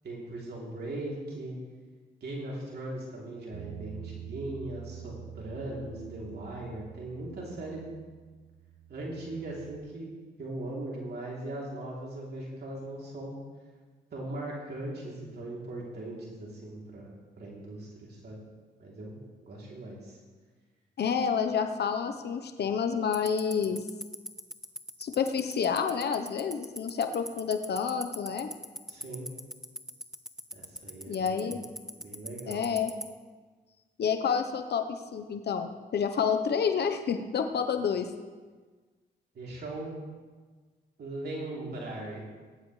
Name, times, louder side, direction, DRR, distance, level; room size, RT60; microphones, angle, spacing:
voice 1, 0.0-1.6 2.2-7.8 8.9-10.1 10.4-13.3 14.1-18.4 18.8-19.2 19.4-20.2 28.9-29.3 30.5-31.6 32.0-32.7 39.3-40.0 41.0-42.2, right 2 dB, 65° right, -4 dB, 3.1 m, -39 dB
Bass guitar, 3.5-9.8, right 10 dB, 85° right, 0.8 m, -46 dB
voice 2, 21.0-23.8 25.0-28.5 31.1-31.6 32.5-32.9 34.0-38.1, left 6 dB, 65° left, 7 dB, 0.9 m, -29 dB
Tick-tock, 23.1-33.0, equal, 5° right, 1.0 m, -36 dB
19.0 x 10.5 x 3.2 m, 1.4 s
cardioid pair, 70°, 18 cm